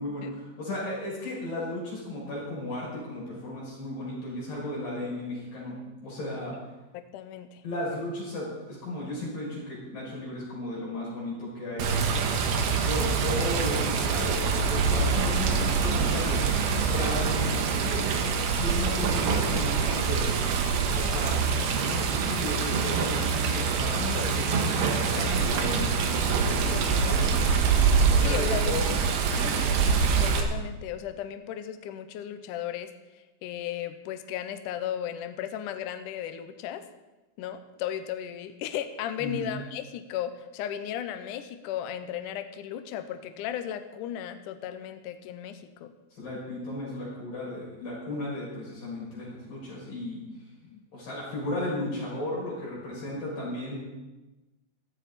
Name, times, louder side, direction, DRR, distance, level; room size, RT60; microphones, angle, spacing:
voice 1, 0.0-6.5 7.6-11.9 12.8-20.5 20.9-26.1 26.4-26.8 27.1-27.6 28.1-29.6 39.2-39.4 46.1-50.2 50.9-53.8, left 1 dB, 55° left, -6 dB, 8.1 m, -35 dB
voice 2, 6.9-7.6 26.7-27.3 28.2-28.6 30.2-32.9 33.4-36.8 37.4-45.9 50.6-50.8, left 10 dB, 90° left, 9 dB, 1.8 m, -35 dB
Water, 11.8-30.4, right 5 dB, 85° right, 3.5 m, -25 dB
16.5 x 14.0 x 4.2 m, 1.1 s
omnidirectional pair, 4.9 m